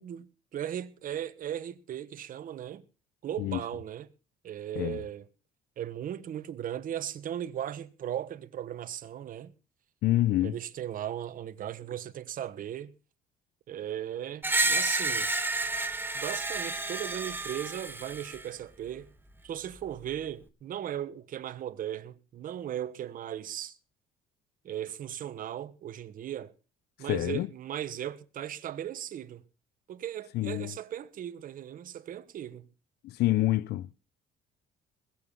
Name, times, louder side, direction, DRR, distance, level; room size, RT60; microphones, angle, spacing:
voice 1, 0.0-2.8 3.2-4.1 4.4-5.2 5.8-9.5 10.4-12.9 13.7-15.3 16.1-19.1 19.4-23.8 24.6-26.5 27.0-29.4 29.9-32.7, right 10 dB, 55° right, 1.2 m, -37 dB
voice 2, 10.0-10.6 27.0-27.5 30.3-30.7 33.0-34.0, left 15 dB, 75° left, 0.6 m, -27 dB
Screech, 14.4-18.4, right 2 dB, 10° right, 1.4 m, -30 dB
21.5 x 7.2 x 5.7 m
cardioid pair, 110°, 17 cm